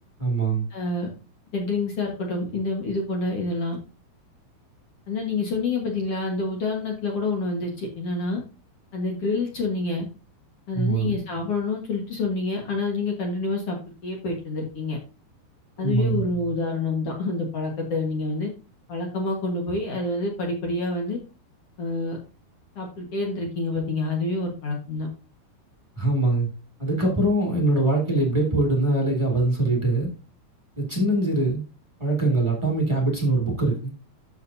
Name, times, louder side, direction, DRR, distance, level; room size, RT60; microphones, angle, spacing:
voice 1, 0.2-0.7 10.7-11.1 15.8-16.2 25.9-26.5 26.8-30.1 30.8-31.6 32.0-33.9, right 2 dB, 40° right, 0.4 m, -23 dB
voice 2, 0.7-1.1 1.5-3.8 5.1-8.4 8.9-10.1 10.7-15.0 15.8-18.5 18.9-21.2 21.8-22.2 22.8-25.1, left 3 dB, 55° left, 1.7 m, -27 dB
13.0 x 5.9 x 2.8 m
omnidirectional pair, 4.9 m